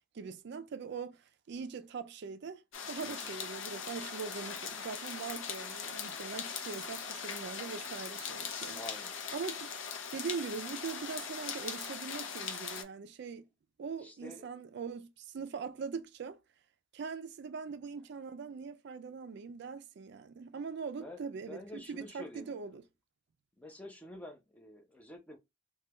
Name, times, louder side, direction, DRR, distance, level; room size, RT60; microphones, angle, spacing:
voice 1, 0.0-2.6 2.9-8.8 9.3-9.7 10.1-13.4 13.8-16.4 16.9-22.8, right 5 dB, 60° right, 0.4 m, -42 dB
sound 1, 2.7-12.8, left 6 dB, 75° left, 0.6 m, -40 dB
voice 2, 3.0-3.3 8.7-9.2 14.0-14.5 21.0-22.8 23.6-25.4, left 1 dB, 10° left, 0.6 m, -49 dB
3.2 x 2.3 x 2.9 m
head